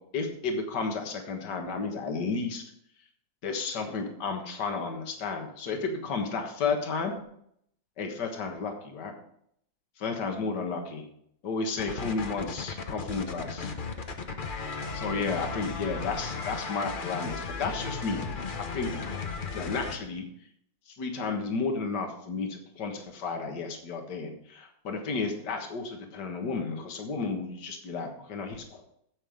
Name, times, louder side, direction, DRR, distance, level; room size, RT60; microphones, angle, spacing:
voice 1, 0.1-2.6 3.4-7.2 8.0-9.1 10.0-11.1 11.4-13.7 14.9-18.2 18.6-19.0 19.5-20.3 20.9-28.8, left 4 dB, 65° left, 3 dB, 2.1 m, -32 dB
sound 1, 11.8-20.0, left 4 dB, 45° left, 0.7 m, -35 dB
9.9 x 7.7 x 5.1 m, 0.69 s
omnidirectional pair, 2.0 m